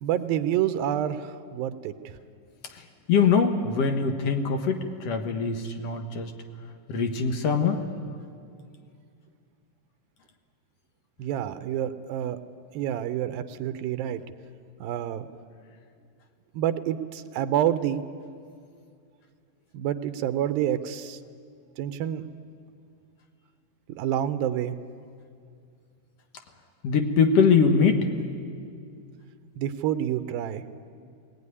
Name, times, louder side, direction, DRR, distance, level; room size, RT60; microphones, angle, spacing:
voice 1, 0.0-1.9 11.2-12.4 12.7-14.2 14.8-15.3 16.5-18.0 19.7-21.2 21.8-22.2 23.9-24.8 29.6-30.6, right 11 dB, 90° right, 10 dB, 2.6 m, -28 dB
voice 2, 3.1-6.3 6.9-7.8 26.8-28.1, left 5 dB, 60° left, 5 dB, 1.8 m, -22 dB
21.0 x 18.5 x 9.7 m, 2.3 s
omnidirectional pair, 4.1 m